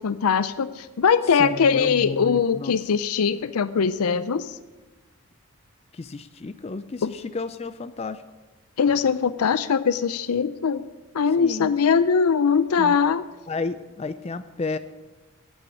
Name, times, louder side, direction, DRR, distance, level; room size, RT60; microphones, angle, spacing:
voice 1, 0.0-4.5 7.0-7.1 8.8-10.8 11.1-13.2, left 6 dB, 85° left, 14 dB, 0.5 m, -21 dB
voice 2, 1.4-2.7 5.9-8.2 11.4-11.7 12.8-12.9 13.5-14.8, left 3 dB, 30° left, 13 dB, 0.3 m, -32 dB
8.9 x 8.8 x 9.7 m, 1.2 s
head